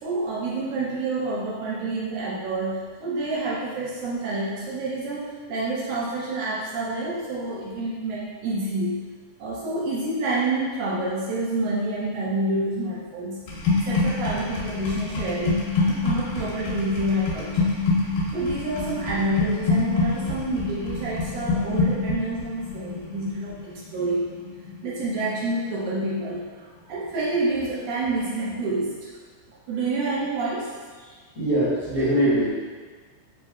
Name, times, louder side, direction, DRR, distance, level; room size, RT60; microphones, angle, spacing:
voice 1, 0.0-9.0 9.4-13.4 13.9-17.7 18.3-24.3 24.8-29.1 29.7-30.7, right 2 dB, 75° right, -6 dB, 1.9 m, -28 dB
sound 1, 13.5-25.3 25.6-26.0, left 3 dB, 85° left, 2.3 m, -26 dB
voice 2, 31.3-32.5, right 1 dB, 60° left, -14 dB, 0.8 m, -22 dB
4.9 x 2.7 x 2.4 m, 1.5 s
omnidirectional pair, 3.6 m